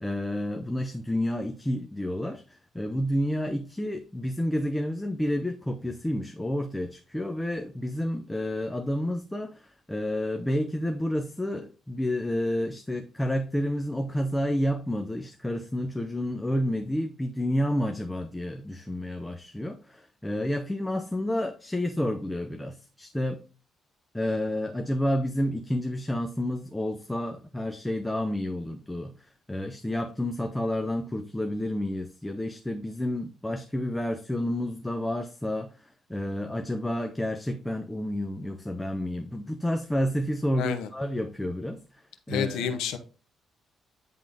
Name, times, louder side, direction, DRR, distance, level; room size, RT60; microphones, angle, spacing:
voice 1, 0.0-23.4 24.1-41.8 42.3-42.8, left 1 dB, 10° left, 6 dB, 0.7 m, -30 dB
voice 2, 40.5-40.9 42.3-43.0, left 8 dB, 90° left, 9 dB, 1.0 m, -29 dB
9.8 x 3.8 x 3.5 m, 0.35 s
cardioid pair, 90°, 0 cm